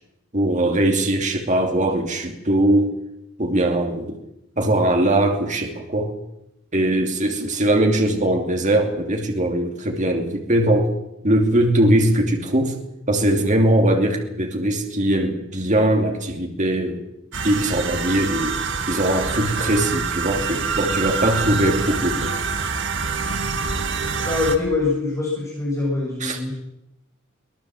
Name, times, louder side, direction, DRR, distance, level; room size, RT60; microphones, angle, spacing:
voice 1, 0.3-2.9 3.4-4.2 4.6-6.1 6.7-10.9 11.2-12.7 13.1-17.0 17.4-18.5 18.9-22.4 26.2-26.4, right 1 dB, 35° right, 3 dB, 2.8 m, -20 dB
sound 1, 17.3-24.6, right 5 dB, 65° right, 2.2 m, -26 dB
voice 2, 24.2-26.5, left 3 dB, 15° left, -4 dB, 7.7 m, -23 dB
24.0 x 18.0 x 7.8 m, 0.84 s
head